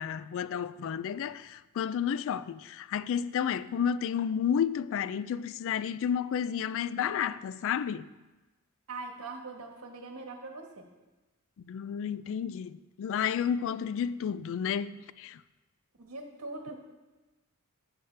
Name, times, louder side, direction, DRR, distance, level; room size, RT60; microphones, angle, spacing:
voice 1, 0.0-8.1 11.7-15.4, left 8 dB, 65° left, 0.3 m, -31 dB
voice 2, 8.9-10.9 16.0-16.7, right 3 dB, 80° right, 1.4 m, -42 dB
11.0 x 7.9 x 3.3 m
head